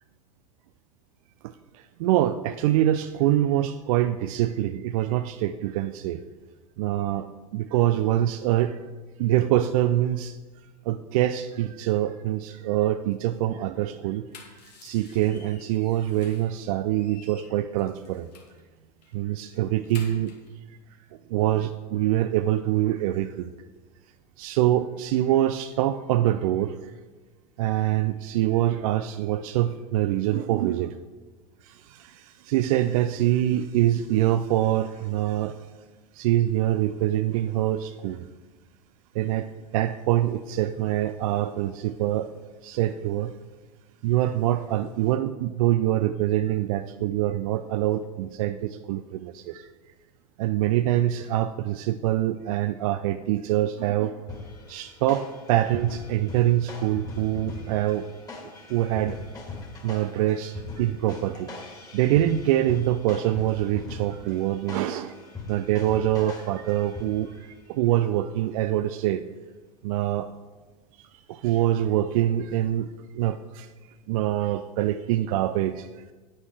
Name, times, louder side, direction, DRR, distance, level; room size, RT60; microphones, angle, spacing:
voice 1, 1.4-6.2 6.8-8.8 9.2-10.4 10.9-14.3 14.8-18.3 19.1-20.3 21.3-23.5 24.4-26.9 27.6-30.9 31.6-35.6 36.1-38.3 39.1-39.5 39.7-42.3 42.6-43.3 44.0-49.7 50.4-54.2 54.7-58.1 58.7-59.2 59.8-61.5 61.9-65.2 65.5-69.2 69.8-70.3 71.0-72.9 73.1-73.7 74.1-75.9, right 13 dB, 55° right, 11 dB, 0.5 m, -25 dB
sound 1, 14.1-16.6 16.9-18.6 19.0-19.2 19.5-20.5, left 5 dB, 70° left, 2.1 m, -50 dB
sound 2, 54.3-67.4, left 3 dB, 15° left, 2.7 m, -40 dB
9.7 x 8.7 x 4.8 m, 1.3 s
figure-of-eight pair, 85°, 21 cm